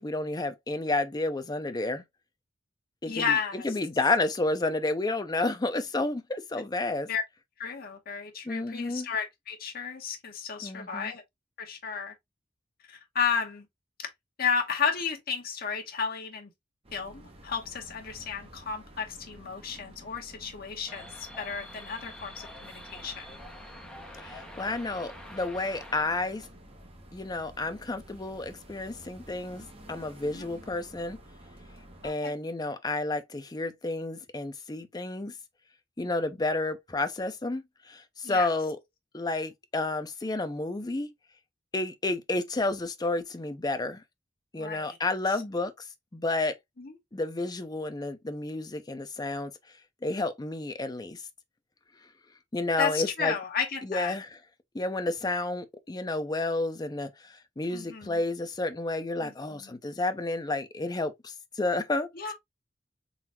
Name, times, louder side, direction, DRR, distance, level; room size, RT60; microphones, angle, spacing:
voice 1, 0.0-2.0 3.0-7.1 8.5-9.1 10.6-11.1 24.2-26.5 27.1-31.2 32.0-35.3 36.0-38.8 39.1-41.1 41.7-44.0 44.5-45.7 46.1-46.6 47.1-49.5 50.0-51.2 52.5-53.4 53.8-54.4 54.7-62.1, left 2 dB, 20° left, 0.5 m, -31 dB
voice 2, 3.1-3.6 7.1-7.2 7.6-11.2 11.6-12.1 12.9-13.7 14.0-14.1 14.4-16.5 16.9-23.4 30.2-30.5 32.0-32.3 38.2-38.5 44.5-45.0 46.8-46.9 52.8-54.2 57.7-58.2 59.2-59.7 62.1-62.3, left 6 dB, 55° left, 1.0 m, -33 dB
sound 1, 16.8-32.1, right 1 dB, 35° right, 1.1 m, -51 dB
sound 2, 20.9-26.0, left 1 dB, 5° left, 0.9 m, -46 dB
3.9 x 3.2 x 2.8 m
head